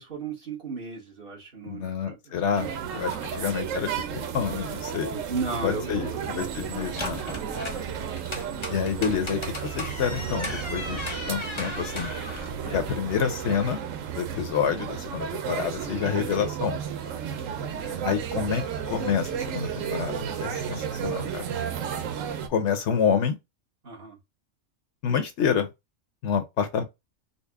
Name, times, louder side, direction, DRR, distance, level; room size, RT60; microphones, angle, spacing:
voice 1, 0.0-3.2 5.3-6.6 7.2-7.5 12.6-12.8 15.9-16.1 23.8-24.2, right 4 dB, 45° right, 1.4 m, -36 dB
voice 2, 1.6-5.2 5.6-7.2 8.7-9.4 9.7-12.1 12.7-13.8 14.1-16.8 18.0-21.4 22.5-23.4 25.0-25.7 26.2-26.8, left 7 dB, 70° left, 1.0 m, -28 dB
sound 1, 2.5-22.5, right 8 dB, 90° right, 1.0 m, -33 dB
sound 2, 6.4-12.9, left 2 dB, 30° left, 0.7 m, -37 dB
4.0 x 2.0 x 3.4 m
omnidirectional pair, 1.3 m